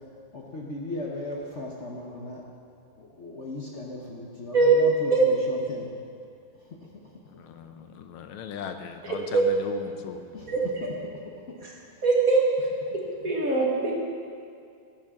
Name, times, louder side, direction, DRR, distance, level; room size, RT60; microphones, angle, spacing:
voice 1, 0.3-2.4 3.0-5.9 10.3-10.7 13.2-13.3, left 2 dB, 45° left, -2 dB, 1.1 m, -37 dB
voice 2, 7.3-10.2, left 7 dB, 90° left, 7 dB, 1.7 m, -38 dB
voice 3, 9.0-9.4 10.5-10.6 12.0-12.4 12.9-13.9, right 4 dB, 45° right, -2 dB, 2.0 m, -22 dB
17.0 x 10.0 x 3.7 m, 2.4 s
omnidirectional pair, 2.3 m